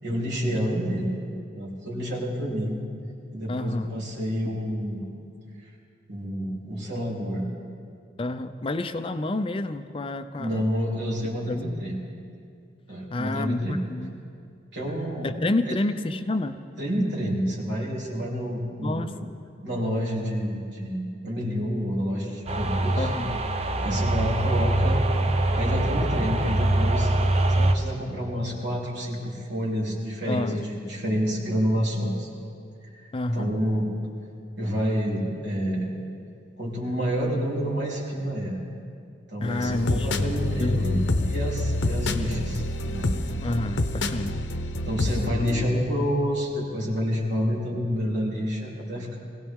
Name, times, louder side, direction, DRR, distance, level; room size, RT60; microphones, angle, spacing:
voice 1, 0.0-1.2 1.5-2.8 3.3-5.0 6.1-7.5 10.4-12.0 12.9-13.8 14.7-15.4 15.7-15.8 16.0-16.1 16.8-19.1 19.6-23.1 23.8-25.0 25.5-27.1 27.5-32.3 32.8-33.9 34.6-35.9 36.6-38.6 39.3-41.0 41.3-43.1 44.8-49.2, equal, 75° right, -4 dB, 3.5 m, -28 dB
voice 2, 3.5-4.0 8.2-10.6 11.5-11.8 13.1-14.2 15.2-16.6 18.8-19.4 23.0-23.4 30.3-30.6 33.1-33.6 39.4-40.2 40.6-40.9 43.4-44.5, left 2 dB, 30° left, 9 dB, 0.5 m, -29 dB
sound 1, 22.5-27.7, right 2 dB, 35° right, 0.7 m, -24 dB
sound 2, 39.4-45.7, left 2 dB, 80° left, 0.7 m, -27 dB
22.5 x 16.5 x 3.7 m, 2.3 s
head